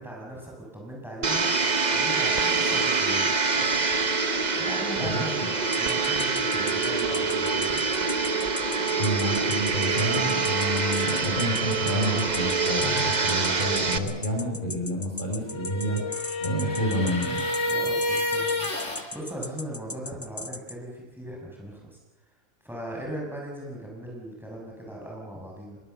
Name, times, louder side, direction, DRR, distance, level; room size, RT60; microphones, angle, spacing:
voice 1, 0.0-3.9 4.5-7.8 17.6-22.0 22.6-25.8, equal, ahead, -2 dB, 6.2 m, -39 dB
Domestic sounds home sounds, 1.2-14.0, right 4 dB, 35° right, 1.2 m, -25 dB
sound 1, 5.7-20.7, left 2 dB, 15° left, 0.6 m, -37 dB
voice 2, 9.0-16.0 16.4-17.4, equal, 40° left, -1 dB, 5.0 m, -29 dB
sound 2, 15.4-19.1, left 1 dB, 65° left, 3.2 m, -29 dB
24.0 x 21.5 x 6.9 m, 1.2 s
omnidirectional pair, 1.3 m